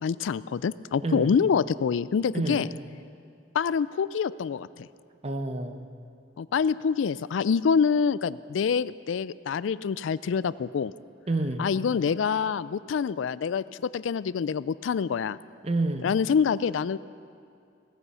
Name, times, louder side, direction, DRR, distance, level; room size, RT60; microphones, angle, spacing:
voice 1, 0.0-2.7 3.5-4.9 6.4-10.9 11.6-13.6 13.9-15.4 16.0-17.0, left 6 dB, 85° left, 18 dB, 0.4 m, -26 dB
voice 2, 1.0-1.3 2.3-2.6 5.2-5.9 11.3-11.7 15.6-16.1, right 2 dB, 35° right, 7 dB, 0.8 m, -28 dB
17.5 x 14.0 x 5.5 m, 2.4 s
head